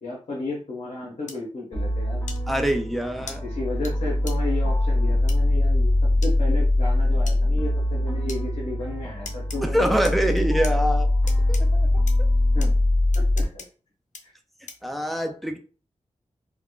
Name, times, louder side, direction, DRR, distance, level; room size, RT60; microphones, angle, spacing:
voice 1, 0.0-2.2 3.4-10.1 12.5-12.7 13.1-13.7 14.2-14.3, left 2 dB, 65° left, -4 dB, 1.0 m, -33 dB
sound 1, 1.3-1.4 2.3-2.4 3.3-3.4 3.8-3.9 4.3-4.4 5.3-5.4 6.2-6.3 7.3-7.4 8.3-8.4 9.2-9.6 10.0-10.7 11.3-11.6 12.1-12.2 12.6-12.7 13.1-13.7 14.1-14.2 14.7-14.9, left 4 dB, 85° left, 0.5 m, -38 dB
sound 2, 1.7-13.4, left 1 dB, 20° left, 0.9 m, -22 dB
voice 2, 2.5-3.4 9.6-11.1 11.5-11.9 14.8-15.6, equal, ahead, 5 dB, 0.4 m, -24 dB
3.6 x 2.3 x 2.3 m, 0.39 s
wide cardioid pair, 95°, 12 cm